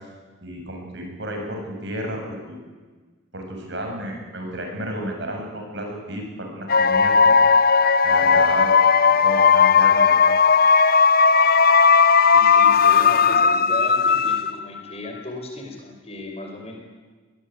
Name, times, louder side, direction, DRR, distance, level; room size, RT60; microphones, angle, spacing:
voice 1, 0.4-2.6 3.3-7.3 7.6-7.7 8.0-8.7 9.1-10.4, right 1 dB, 55° right, 2 dB, 7.5 m, -32 dB
sound 1, 6.7-14.8, left 5 dB, 45° left, 0.8 m, -16 dB
voice 2, 12.3-16.8, left 2 dB, 30° left, 2 dB, 5.1 m, -35 dB
25.0 x 20.5 x 9.6 m, 1.4 s
head